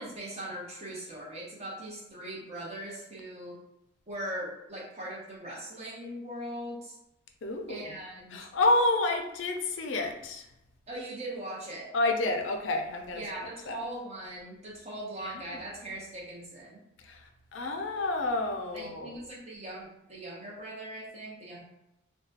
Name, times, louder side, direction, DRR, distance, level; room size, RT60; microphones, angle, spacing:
voice 1, 0.0-3.6 4.1-7.0 7.7-8.5 10.9-11.9 13.1-16.8 18.7-21.6, right 1 dB, 35° right, -5 dB, 0.9 m, -40 dB
voice 2, 7.4-8.0 8.3-10.5 11.9-13.2 13.7-13.8 15.2-15.6 17.0-19.2, left 2 dB, 65° left, 4 dB, 0.4 m, -29 dB
2.8 x 2.2 x 2.8 m, 0.85 s
head